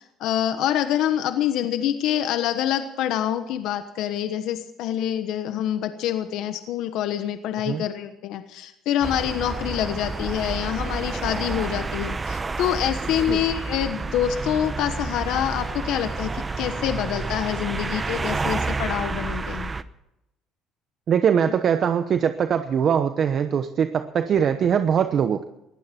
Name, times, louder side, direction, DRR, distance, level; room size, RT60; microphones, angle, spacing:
voice 1, 0.0-19.7, left 11 dB, 75° left, 9 dB, 1.2 m, -26 dB
sound 1, 9.0-19.8, right 3 dB, 20° right, 0.9 m, -29 dB
voice 2, 21.1-25.4, right 8 dB, 50° right, 9 dB, 1.0 m, -22 dB
20.0 x 15.0 x 4.5 m, 0.90 s
cardioid pair, 105°, 0 cm